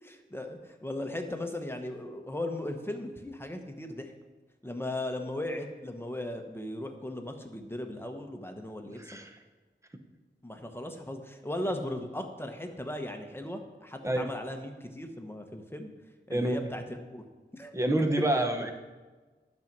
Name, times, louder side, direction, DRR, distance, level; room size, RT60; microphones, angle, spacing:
voice 1, 0.0-4.1 4.6-9.1 10.4-15.9 16.3-16.8 17.1-17.2 17.5-17.7 18.4-18.5, left 1 dB, 10° left, 4 dB, 1.1 m, -37 dB
voice 2, 9.0-9.3 14.0-14.3 16.3-16.6 17.7-18.7, right 1 dB, 15° right, 5 dB, 1.0 m, -27 dB
10.5 x 5.4 x 6.1 m, 1.3 s
wide cardioid pair, 60°, 19 cm